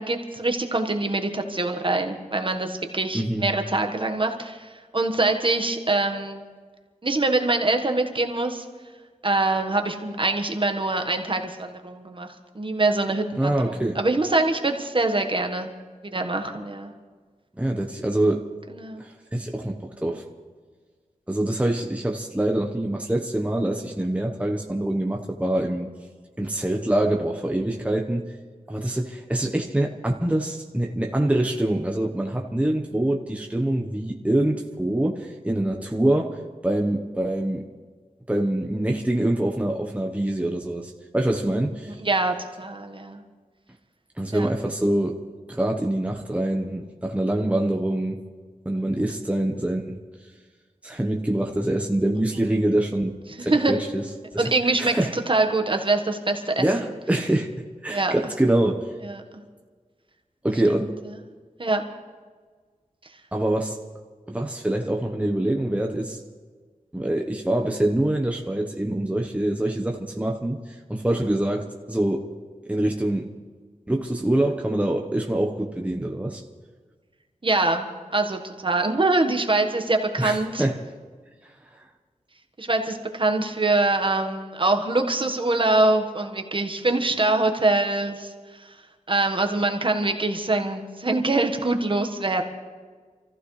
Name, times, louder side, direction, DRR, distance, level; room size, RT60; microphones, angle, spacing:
voice 1, 0.0-6.4 7.0-8.6 9.2-12.3 12.5-15.7 16.0-16.9 18.7-19.1 42.0-43.2 44.3-44.5 48.8-48.9 53.4-53.7 54.4-56.7 57.9-58.1 59.0-59.4 61.6-61.8 77.4-80.7 82.6-88.3 88.6-88.7 89.1-92.4, right 2 dB, 35° right, 4 dB, 1.5 m, -24 dB
voice 2, 3.1-3.4 13.4-14.0 17.6-18.5 19.0-20.2 21.3-25.9 26.4-28.3 28.7-36.4 36.6-37.7 38.3-42.0 44.2-45.2 45.5-48.2 48.6-50.0 50.8-53.1 53.4-54.1 54.3-54.5 54.8-55.1 56.6-57.5 57.8-58.9 60.4-60.9 63.3-63.8 64.3-66.2 66.9-72.3 72.7-73.3 73.9-76.4 80.2-80.8, right 1 dB, 10° right, 1 dB, 1.1 m, -25 dB
27.5 x 14.5 x 3.3 m, 1.5 s
wide cardioid pair, 100°, 14 cm